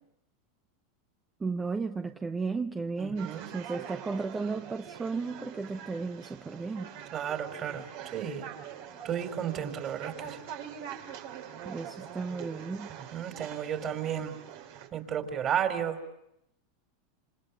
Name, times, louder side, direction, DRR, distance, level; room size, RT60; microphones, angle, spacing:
voice 1, 1.4-6.9 11.6-12.9, right 4 dB, 15° right, 0.9 m, -34 dB
voice 2, 3.0-3.5 7.1-8.5 9.0-10.4 12.9-14.3 14.9-16.0, right 9 dB, 40° right, 4.1 m, -33 dB
sound 1, 3.2-14.9, right 9 dB, 65° right, 3.4 m, -44 dB
28.5 x 26.5 x 7.0 m
hypercardioid pair, 105°, 0 cm